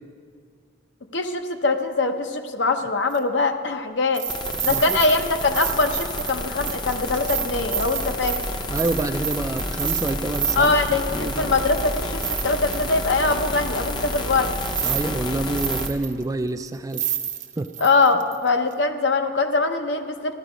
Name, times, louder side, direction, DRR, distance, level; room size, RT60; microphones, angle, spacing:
voice 1, 1.1-4.3 4.6-8.4 10.6-14.5 17.8-20.3, left 3 dB, 60° left, 6 dB, 0.8 m, -22 dB
sound 1, 3.1-3.2 4.1-10.8 11.3-11.4 11.8-13.1 13.8-13.9 14.4-15.1 15.4-16.2 16.7-16.8 16.9-18.4 18.7-18.8, right 9 dB, 40° right, 0.8 m, -29 dB
sound 2, 4.3-15.9, left 1 dB, 25° left, 0.7 m, -30 dB
voice 2, 4.7-5.0 8.7-10.7 11.1-11.5 14.8-17.0 17.6-17.7, right 2 dB, 15° right, 9 dB, 0.3 m, -27 dB
14.5 x 12.0 x 5.1 m, 2.1 s
head